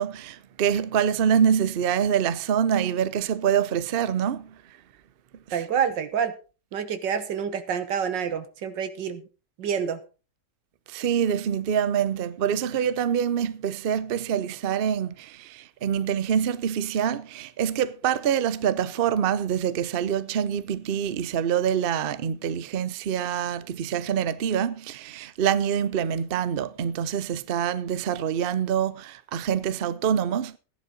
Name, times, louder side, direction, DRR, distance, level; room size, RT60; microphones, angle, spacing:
voice 1, 0.0-4.8 10.9-30.6, right 8 dB, 55° right, 0.6 m, -25 dB
voice 2, 5.5-6.3 6.7-9.2 9.6-10.0, right 7 dB, 90° right, 1.9 m, -27 dB
15.0 x 10.5 x 3.9 m
omnidirectional pair, 1.9 m